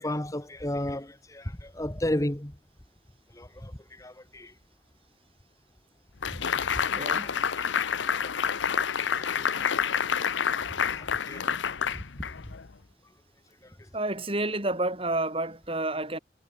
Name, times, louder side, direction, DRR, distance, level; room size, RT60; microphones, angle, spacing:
voice 1, 0.0-2.5 3.3-4.5 7.2-7.7 8.4-8.6 9.1-9.7 10.9-11.5 11.9-12.0 13.6-13.7, left 1 dB, 15° left, 1.4 m, -34 dB
sound 1, 6.2-12.7, left 7 dB, 85° left, 0.8 m, -28 dB
voice 2, 6.9-7.3 13.9-16.2, right 2 dB, 30° right, 7.4 m, -29 dB
head